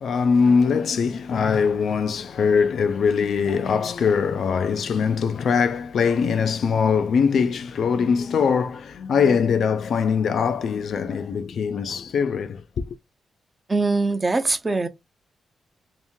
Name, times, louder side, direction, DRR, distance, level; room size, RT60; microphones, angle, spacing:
voice 1, 0.0-12.6, left 6 dB, 60° left, 0.3 m, -22 dB
voice 2, 13.7-14.9, right 3 dB, 20° right, 0.5 m, -22 dB
2.8 x 2.6 x 3.5 m
wide cardioid pair, 155°, 0 cm